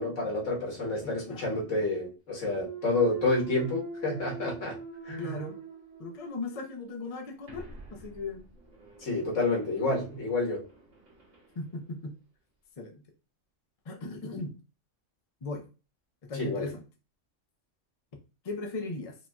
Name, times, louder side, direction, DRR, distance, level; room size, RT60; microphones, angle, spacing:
voice 1, 0.0-4.8 5.1-5.4 9.0-10.6 16.3-16.7, left 2 dB, 90° left, 1.8 m, -29 dB
voice 2, 1.0-1.6 5.2-5.6 6.0-8.5 11.5-12.1 12.8-13.0 13.9-14.5 15.4-15.6 16.2-16.8 18.4-19.1, left 3 dB, 35° left, 0.7 m, -38 dB
Thump thud, 2.3-6.3 6.8-11.5, right 5 dB, 85° right, 1.6 m, -44 dB
5.0 x 2.7 x 2.3 m
omnidirectional pair, 1.3 m